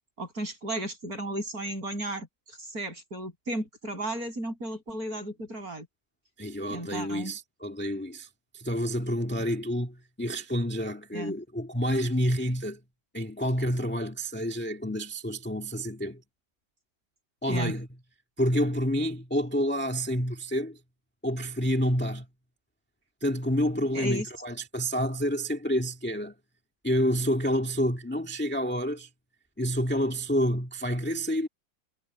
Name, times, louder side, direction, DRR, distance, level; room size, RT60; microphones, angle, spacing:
voice 1, 0.2-5.9 6.7-7.3 11.1-11.3 17.5-17.7 23.9-24.3, right 1 dB, 45° right, 8.1 m, -34 dB
voice 2, 6.4-8.3 8.5-12.8 13.1-16.2 17.4-17.9 18.4-20.8 21.2-22.3 23.2-26.3 26.8-29.1 29.6-31.5, equal, 5° left, 1.5 m, -28 dB
omnidirectional pair, 2.1 m